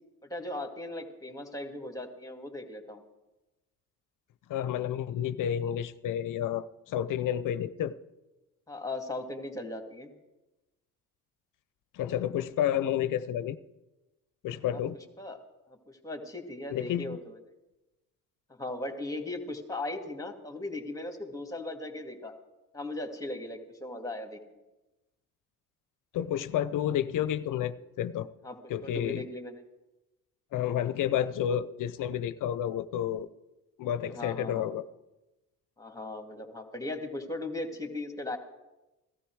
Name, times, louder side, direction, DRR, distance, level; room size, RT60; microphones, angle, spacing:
voice 1, 0.3-3.0 8.7-10.1 14.7-14.8 15.2-15.4 15.7-17.4 18.5-22.3 22.7-24.4 28.4-28.6 28.8-29.6 34.1-34.7 35.8-38.4, left 2 dB, 10° left, 5 dB, 2.3 m, -38 dB
voice 2, 4.5-7.9 11.9-13.6 14.4-15.0 16.7-17.2 26.1-28.3 28.7-29.3 30.5-33.3 33.8-34.8, left 10 dB, 65° left, 14 dB, 0.7 m, -30 dB
16.5 x 13.0 x 4.7 m, 1.0 s
supercardioid pair, 75°, 35 cm